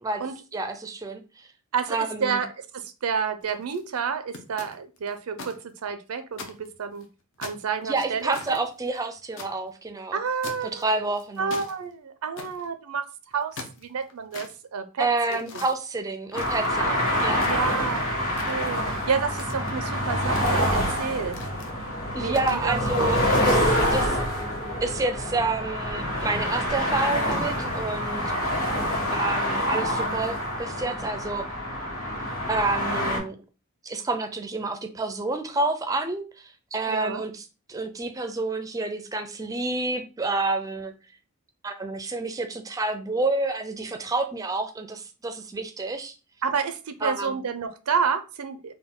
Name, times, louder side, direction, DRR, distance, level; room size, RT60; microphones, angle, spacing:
voice 1, 0.5-1.5 1.9-2.4 7.8-10.2 10.6-11.6 15.0-17.4 22.1-24.2 24.8-28.2 29.1-31.5 32.5-33.4 33.8-37.4 37.7-40.9 41.6-46.1 47.0-47.4, right 3 dB, 15° right, 8 dB, 0.4 m, -29 dB
voice 2, 1.7-2.5 2.7-7.1 7.4-8.6 10.1-11.0 11.4-13.0 13.3-15.1 16.8-17.0 17.4-21.4 22.2-23.1 36.9-37.2 46.4-48.7, right 6 dB, 90° right, 10 dB, 0.5 m, -30 dB
sound 1, 3.4-3.8 4.3-5.5 5.9-6.0 6.3-7.0 7.4-9.5 10.4-10.8 11.2-11.7 12.4-12.7 13.3-14.5 15.3-15.7 16.3-16.9 17.3-17.9 18.4-18.8 19.3-19.8 20.3-20.9 21.3-21.7 22.3-22.7, left 3 dB, 60° left, 0.7 m, -41 dB
sound 2, 16.3-33.2, equal, 80° left, 1.6 m, -26 dB
3.9 x 2.2 x 3.6 m, 0.32 s
head